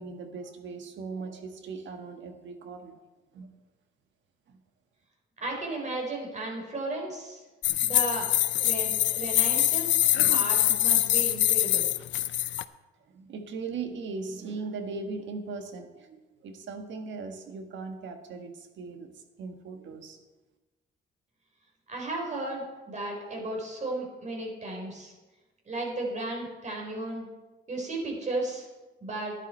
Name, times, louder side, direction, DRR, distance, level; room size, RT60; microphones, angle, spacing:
voice 1, 0.0-3.0 3.3-3.5 4.5-4.6 13.1-19.1 19.4-20.2, right 4 dB, 70° right, 6 dB, 1.5 m, -39 dB
voice 2, 5.4-7.4 7.8-11.8 21.9-25.1 25.7-27.3 27.7-28.7 29.0-29.3, right 2 dB, 35° right, 0 dB, 4.3 m, -34 dB
sound 1, 7.6-12.6, left 13 dB, 70° left, 0.5 m, -24 dB
11.0 x 11.0 x 4.4 m, 1.2 s
cardioid pair, 90°, 20 cm